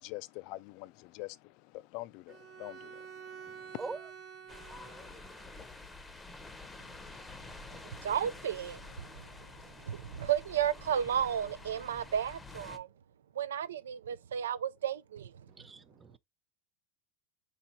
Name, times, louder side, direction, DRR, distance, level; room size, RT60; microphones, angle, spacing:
voice 1, 0.0-3.8, left 19 dB, 55° left, 0.3 m, -45 dB
Bowed string instrument, 2.3-5.8, right 7 dB, 40° right, 0.8 m, -49 dB
voice 2, 3.8-4.1 15.5-16.2, right 3 dB, 15° right, 0.4 m, -43 dB
sound 1, 4.5-12.8, left 3 dB, 10° left, 0.7 m, -49 dB
voice 3, 7.8-9.3 9.8-12.9 13.4-15.3, right 9 dB, 85° right, 0.4 m, -33 dB
4.1 x 2.6 x 4.2 m
hypercardioid pair, 110°, 0 cm